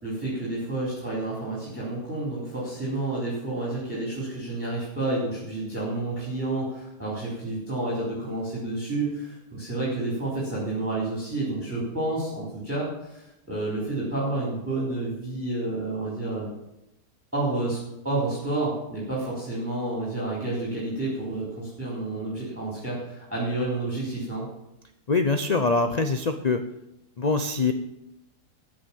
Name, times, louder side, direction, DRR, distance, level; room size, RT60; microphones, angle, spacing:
voice 1, 0.0-16.5 17.3-17.8 18.0-24.5, right 2 dB, 10° right, -6 dB, 3.9 m, -30 dB
voice 2, 25.1-26.6 27.2-27.7, left 3 dB, 55° left, 8 dB, 0.4 m, -23 dB
13.5 x 7.3 x 7.1 m, 0.87 s
omnidirectional pair, 1.8 m